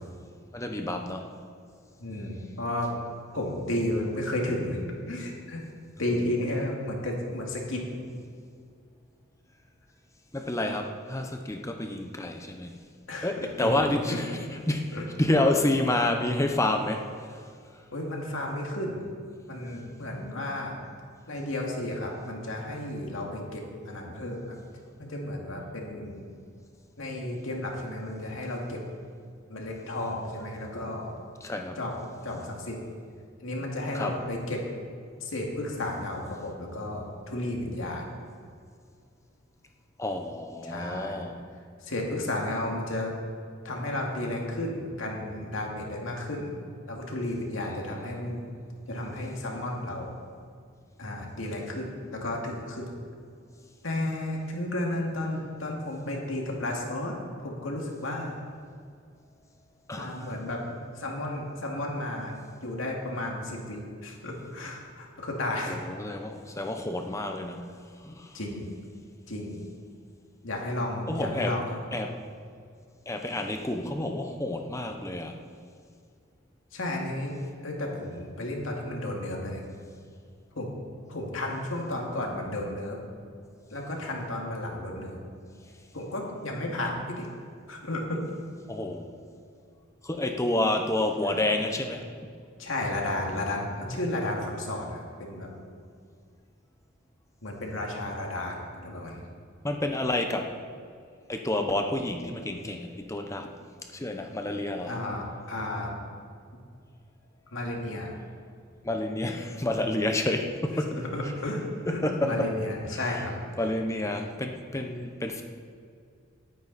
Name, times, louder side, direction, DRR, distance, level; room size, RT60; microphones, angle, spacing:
voice 1, 0.5-1.3 10.3-12.7 13.2-17.1 31.4-31.8 33.9-34.1 40.0-41.4 59.9-60.3 65.7-67.7 68.0-68.4 71.1-71.5 71.9-72.2 73.1-75.4 88.7-89.1 90.0-92.3 99.6-100.5 101.3-103.5 103.9-104.9 108.8-110.9 111.9-112.5 112.9-113.2 113.6-115.4, left 1 dB, 15° left, 4 dB, 0.8 m, -29 dB
voice 2, 2.0-2.9 3.3-5.6 6.0-7.8 13.1-13.7 14.1-14.2 14.9-15.1 17.9-19.0 19.5-20.8 21.3-24.6 25.0-26.2 27.0-28.8 29.5-31.1 31.8-31.9 32.2-32.8 33.4-34.7 35.2-38.0 40.6-41.3 41.8-43.1 43.6-46.5 46.9-48.5 48.9-50.1 51.0-53.0 53.8-57.1 57.4-58.4 59.9-60.6 61.0-65.8 68.3-68.7 69.3-69.6 70.4-71.8 76.7-77.4 77.6-79.6 80.5-80.7 81.1-83.0 83.7-85.2 85.9-87.3 87.7-88.4 92.6-95.5 97.4-99.2 104.9-106.0 107.5-108.2 110.9-113.4, left 1 dB, 75° left, -1 dB, 2.4 m, -33 dB
18.5 x 9.3 x 4.2 m, 2.2 s
head